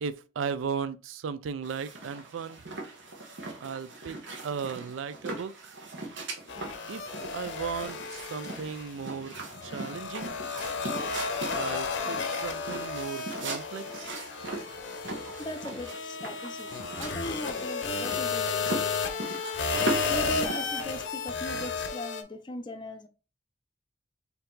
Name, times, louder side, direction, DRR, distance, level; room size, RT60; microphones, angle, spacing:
voice 1, 0.0-2.6 3.6-5.5 6.9-7.1 7.3-9.3 9.6-10.4 11.5-14.1, right 6 dB, 85° right, 0.4 m, -36 dB
sound 1, 1.6-20.8, right 2 dB, 70° right, 1.1 m, -40 dB
sound 2, 6.5-9.1 9.4-22.2, left 5 dB, 65° left, 0.6 m, -33 dB
voice 2, 15.4-19.4 20.1-23.1, left 1 dB, 25° left, 0.5 m, -40 dB
4.4 x 2.7 x 3.8 m
head